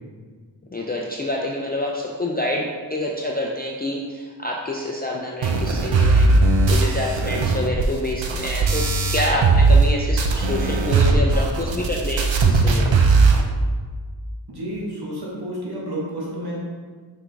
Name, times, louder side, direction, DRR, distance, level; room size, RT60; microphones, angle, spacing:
voice 1, 0.7-13.0, left 1 dB, 20° left, -2 dB, 0.5 m, -27 dB
sound 1, 5.4-9.9 10.2-13.4, right 3 dB, 80° right, 0.7 m, -18 dB
voice 2, 14.5-16.6, equal, 55° right, -5 dB, 1.4 m, -30 dB
5.9 x 4.7 x 3.4 m, 1.5 s
wide cardioid pair, 90°, 44 cm